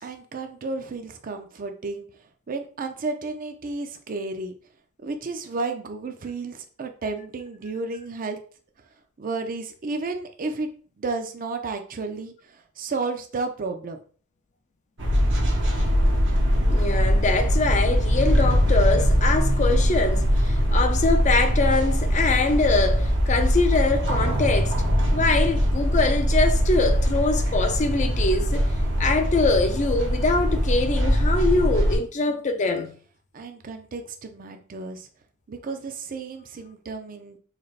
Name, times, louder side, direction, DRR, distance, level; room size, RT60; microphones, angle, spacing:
voice 1, 0.0-2.1 2.5-4.5 5.0-8.4 9.2-10.7 11.0-14.0 33.3-35.1 35.5-37.4, right 3 dB, 40° right, 0.5 m, -32 dB
sound 1, 15.0-32.0, equal, 60° right, 0.8 m, -22 dB
voice 2, 16.7-24.7 25.1-28.7 29.0-32.9, left 3 dB, 35° left, 0.4 m, -23 dB
3.9 x 3.2 x 2.4 m
head